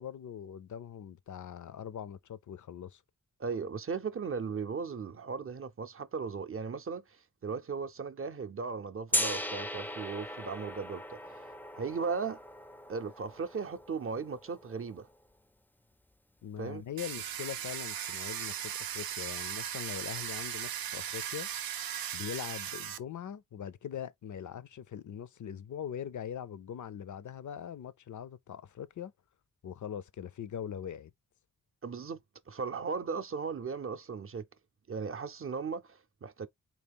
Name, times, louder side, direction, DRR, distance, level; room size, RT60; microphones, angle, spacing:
voice 1, 0.0-3.0 16.4-21.5 22.1-29.1 29.6-31.1, left 9 dB, 60° left, 0.5 m, -42 dB
voice 2, 3.4-11.5 11.8-12.4 12.9-15.1 16.6-16.8 31.8-32.2 32.5-34.4 34.9-36.5, right 5 dB, 40° right, 0.6 m, -37 dB
Gong, 9.1-15.0, left 1 dB, 5° left, 0.4 m, -38 dB
Domestic sounds home sounds, 17.0-23.0, right 10 dB, 85° right, 0.5 m, -38 dB
4.1 x 2.3 x 3.5 m
cardioid pair, 50°, 34 cm